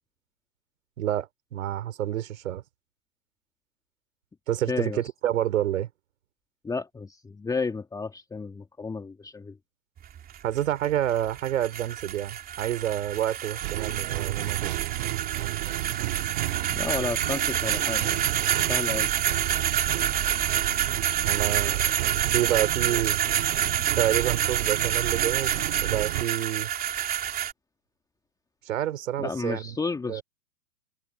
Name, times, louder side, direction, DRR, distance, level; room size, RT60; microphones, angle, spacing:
voice 1, 1.0-2.6 4.5-5.9 10.4-14.7 21.2-21.9 22.3-23.2 23.9-26.7 28.7-29.8 30.1-30.2, right 12 dB, 60° right, 4.4 m, -28 dB
voice 2, 4.7-5.0 6.6-9.6 16.7-18.3 18.7-19.1 29.2-30.2, left 4 dB, 10° left, 2.5 m, -32 dB
sound 1, 10.0-27.5, right 10 dB, 20° right, 3.4 m, -28 dB
sound 2, 13.6-26.2, right 19 dB, 45° right, 1.9 m, -32 dB
hypercardioid pair, 125°, 45 cm